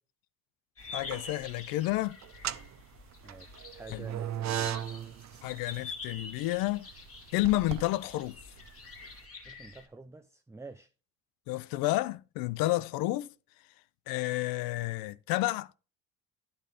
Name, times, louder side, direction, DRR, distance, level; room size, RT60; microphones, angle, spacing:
sound 1, 0.8-9.9, left 4 dB, 40° left, 2.2 m, -47 dB
sound 2, 0.8-1.5 2.2-9.1, right 11 dB, 45° right, 0.7 m, -38 dB
voice 1, 0.9-2.2 3.9-4.1 5.4-6.9 7.3-8.4 11.5-13.3 14.1-15.7, left 17 dB, 70° left, 0.6 m, -30 dB
voice 2, 3.2-5.0 9.4-10.9, right 3 dB, 10° right, 0.5 m, -49 dB
10.5 x 4.0 x 4.9 m
supercardioid pair, 70°, 37 cm